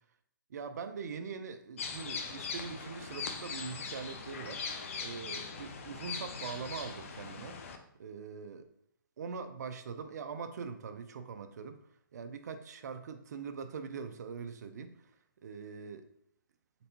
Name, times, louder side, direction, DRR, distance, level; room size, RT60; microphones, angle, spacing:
voice 1, 0.5-4.6 5.0-7.6 8.0-8.7 9.2-11.8 12.1-15.1 15.4-16.1, right 5 dB, 50° right, 8 dB, 0.4 m, -42 dB
sound 1, 1.8-7.8, left 5 dB, 35° left, 0.4 m, -41 dB
4.3 x 4.0 x 2.8 m, 0.74 s
hypercardioid pair, 165°, 12 cm